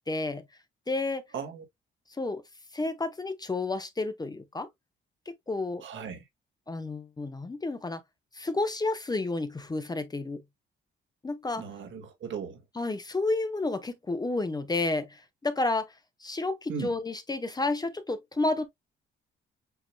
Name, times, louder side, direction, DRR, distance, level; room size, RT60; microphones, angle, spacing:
voice 1, 0.1-0.4 0.9-1.2 2.2-2.4 2.7-4.7 5.3-5.8 6.7-8.0 8.3-10.4 11.2-11.6 12.8-15.9 16.2-18.7, left 2 dB, 20° left, 0.9 m, -31 dB
voice 2, 1.3-1.6 5.8-6.2 11.5-12.6 16.7-16.9, right 6 dB, 70° right, 1.8 m, -37 dB
7.7 x 2.9 x 2.2 m
cardioid pair, 90°, 20 cm